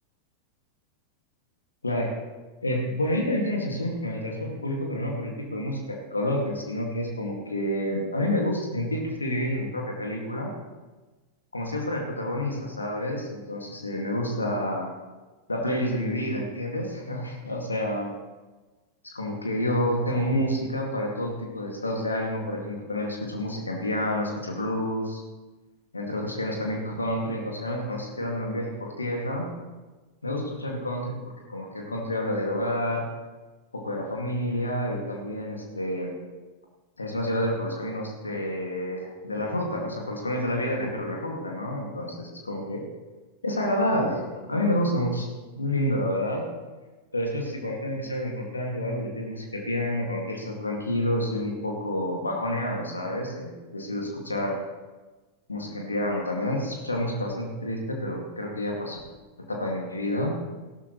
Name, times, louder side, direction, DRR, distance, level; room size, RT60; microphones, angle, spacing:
voice 1, 2.6-10.5 11.5-14.9 15.5-18.1 19.1-25.2 25.9-29.5 30.2-31.2 31.5-33.1 33.7-36.1 37.0-42.8 43.4-44.2 44.5-45.3 45.5-46.5 47.1-54.6 55.5-59.0 59.5-60.3, left 1 dB, 80° left, 0 dB, 2.3 m, -29 dB
16.5 x 13.0 x 3.2 m, 1.2 s
figure-of-eight pair, 90°, 0 cm